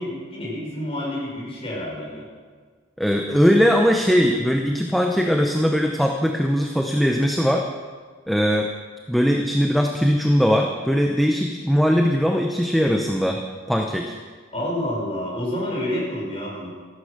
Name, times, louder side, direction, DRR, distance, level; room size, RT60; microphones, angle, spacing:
voice 1, 0.0-2.3 14.5-16.7, left 1 dB, 30° left, -4 dB, 5.7 m, -28 dB
voice 2, 3.0-7.7 8.3-8.7 9.1-13.4 13.7-14.1, equal, ahead, 2 dB, 0.7 m, -20 dB
14.0 x 11.5 x 6.6 m, 1.5 s
head